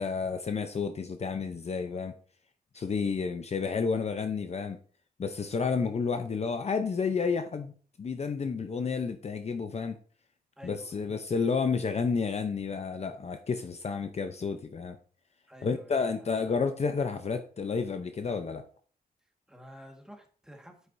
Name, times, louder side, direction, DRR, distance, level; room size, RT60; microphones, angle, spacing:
voice 1, 0.0-2.1 2.7-4.8 5.2-7.7 8.0-10.0 10.6-15.0 15.6-18.6, left 5 dB, 45° left, 0.7 m, -30 dB
voice 2, 10.6-11.1 15.5-16.3 19.5-20.9, equal, 5° right, 1.7 m, -51 dB
10.0 x 8.1 x 2.7 m
wide cardioid pair, 145°, 16 cm